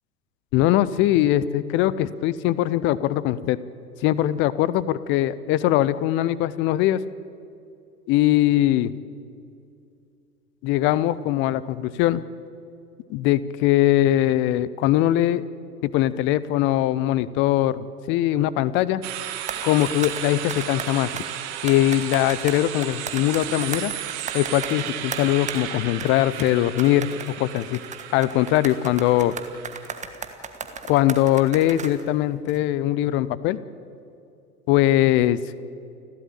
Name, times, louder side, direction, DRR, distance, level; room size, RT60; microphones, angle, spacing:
voice 1, 0.5-3.6 4.0-7.0 8.1-8.9 10.6-12.2 13.1-15.4 15.8-17.8 18.1-19.0 19.6-21.1 21.6-23.9 24.3-27.1 27.4-27.8 28.1-29.3 30.9-33.6 34.7-35.4, left 14 dB, 25° left, 17 dB, 0.6 m, -21 dB
sound 1, 19.0-30.0, right 11 dB, 45° right, 1.9 m, -34 dB
sound 2, 19.4-21.3 21.7-25.6 26.0-26.1 26.4-26.5 26.8-32.0 32.5-32.6, right 6 dB, 15° right, 1.4 m, -36 dB
29.5 x 12.5 x 8.8 m, 2.5 s
figure-of-eight pair, 90°, 47 cm